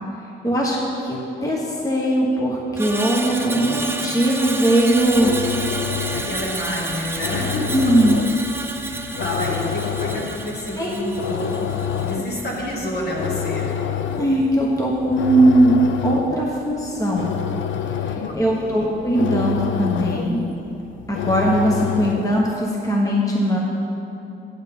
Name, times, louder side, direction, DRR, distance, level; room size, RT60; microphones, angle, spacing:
voice 1, 0.4-0.8 1.0-5.3 7.7-8.2 10.8-11.0 14.2-15.8 16.0-17.3 18.0-20.4 21.1-23.6, right 1 dB, 15° left, -3 dB, 1.2 m, -19 dB
Screech, 2.7-13.1 13.4-13.7, right 2 dB, 10° right, 0.7 m, -31 dB
voice 2, 3.6-4.1 6.1-7.6 8.8-11.6 12.0-13.7 18.2-18.9, left 1 dB, 55° left, -3 dB, 2.1 m, -29 dB
sound 1, 4.9-22.5, left 8 dB, 70° left, 0.5 m, -28 dB
8.2 x 8.1 x 5.3 m, 2.9 s
cardioid pair, 90°, 20 cm